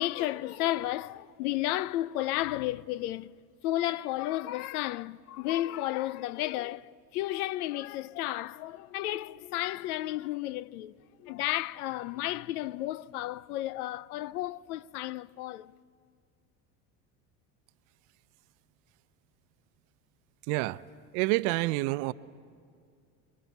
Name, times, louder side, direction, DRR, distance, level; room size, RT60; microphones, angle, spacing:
voice 1, 0.0-3.3 3.6-10.9 11.2-15.7, left 15 dB, 85° left, 0.6 m, -32 dB
voice 2, 20.5-20.8 21.1-22.1, right 21 dB, 70° right, 0.7 m, -28 dB
29.0 x 22.5 x 7.2 m
hypercardioid pair, 85°, 43 cm